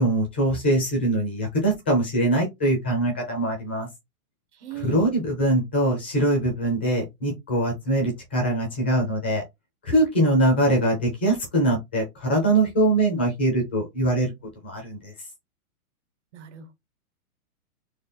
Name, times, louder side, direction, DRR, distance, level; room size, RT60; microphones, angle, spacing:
voice 1, 0.0-3.9 4.8-9.4 9.8-14.3 14.6-15.1, right 1 dB, 10° left, 0.4 m, -22 dB
voice 2, 4.5-5.1 16.3-16.7, right 12 dB, 50° right, 1.6 m, -39 dB
4.0 x 3.1 x 4.2 m
hypercardioid pair, 165°, 45 cm